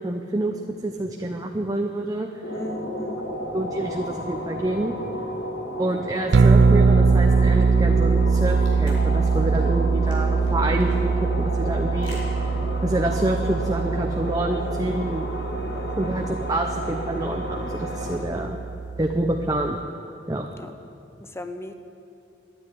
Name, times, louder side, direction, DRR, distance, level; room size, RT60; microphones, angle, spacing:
voice 1, 0.0-2.3 3.5-4.9 5.8-12.2 12.8-15.3 16.0-18.6 19.0-19.8 20.3-20.5, right 1 dB, 20° right, 3 dB, 0.7 m, -27 dB
sound 1, 2.4-18.2, equal, 65° left, 2.0 m, -32 dB
voice 2, 2.5-3.3 15.8-16.2 18.3-18.6 20.6-20.8 21.2-21.7, left 1 dB, 15° left, 8 dB, 0.9 m, -37 dB
sound 2, 6.3-19.8, right 4 dB, 75° right, 0.4 m, -22 dB
sound 3, 8.0-13.2, left 1 dB, 90° left, 3.8 m, -48 dB
13.0 x 9.9 x 10.0 m, 2.7 s
head